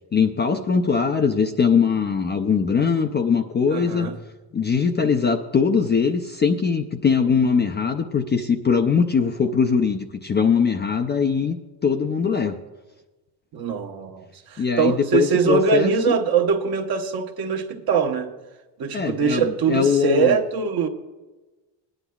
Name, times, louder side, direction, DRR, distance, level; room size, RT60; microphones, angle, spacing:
voice 1, 0.1-4.1 4.5-11.6 11.8-12.6 14.6-16.2 18.9-20.4, left 6 dB, 25° left, 5 dB, 0.4 m, -21 dB
voice 2, 3.7-4.1 13.5-14.2 14.5-18.3 18.8-20.9, right 5 dB, 50° right, 4 dB, 1.1 m, -22 dB
19.0 x 10.0 x 2.3 m, 1.2 s
cardioid pair, 125°, 46 cm